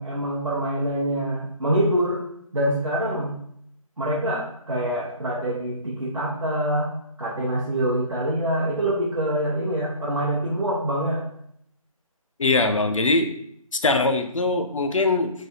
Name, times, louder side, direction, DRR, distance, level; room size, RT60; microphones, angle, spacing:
voice 1, 0.0-2.2 2.5-3.4 4.0-6.9 7.2-11.2, right 1 dB, 60° right, -6 dB, 0.7 m, -25 dB
voice 2, 12.4-13.3 13.8-15.3, left 3 dB, 60° left, 7 dB, 0.4 m, -21 dB
3.3 x 2.2 x 2.7 m, 0.71 s
figure-of-eight pair, 175°, 19 cm